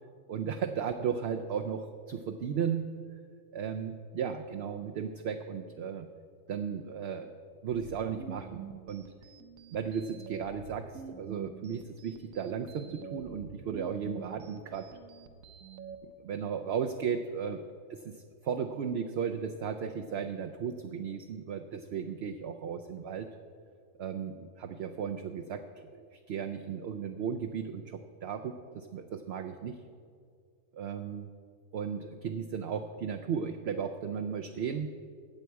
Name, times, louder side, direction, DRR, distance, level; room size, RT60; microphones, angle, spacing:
voice 1, 0.3-2.9 3.5-6.1 6.5-7.3 7.6-8.6 8.9-9.1 9.7-14.9 16.0-17.6 17.9-23.3 24.0-29.8 30.7-31.3 31.7-34.9, right 7 dB, 60° right, 5 dB, 0.7 m, -35 dB
sound 1, 7.7-16.0, right 7 dB, 85° right, 1.2 m, -47 dB
14.5 x 8.4 x 4.6 m, 2.2 s
omnidirectional pair, 1.4 m